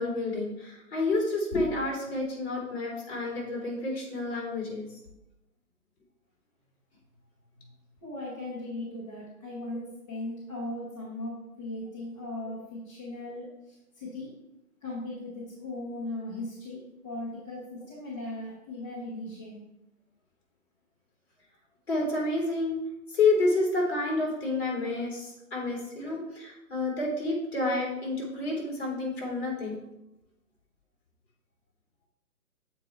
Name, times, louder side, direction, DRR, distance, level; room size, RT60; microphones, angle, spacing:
voice 1, 0.0-4.9 21.9-22.8 23.1-29.8, left 2 dB, 45° left, -2 dB, 2.8 m, -29 dB
voice 2, 8.0-14.3 14.8-19.6, left 1 dB, 20° left, -8 dB, 1.2 m, -38 dB
7.4 x 4.5 x 4.2 m, 0.90 s
hypercardioid pair, 160°, 45 cm